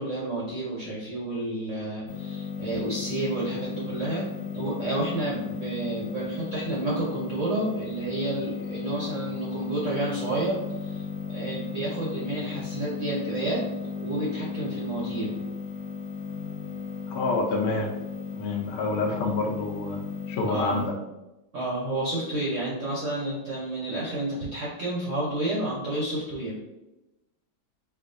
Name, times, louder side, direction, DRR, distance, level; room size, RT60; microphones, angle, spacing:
voice 1, 0.0-4.3 4.5-13.6 14.0-15.3 20.5-20.9 21.5-26.6, right 2 dB, 60° right, -6 dB, 0.8 m, -30 dB
sound 1, 2.1-20.9, left 5 dB, 50° left, 0.8 m, -35 dB
voice 2, 17.1-17.9 18.3-20.0 20.3-21.0, left 3 dB, 90° left, 2 dB, 1.4 m, -27 dB
4.5 x 2.5 x 2.5 m, 0.98 s
omnidirectional pair, 2.2 m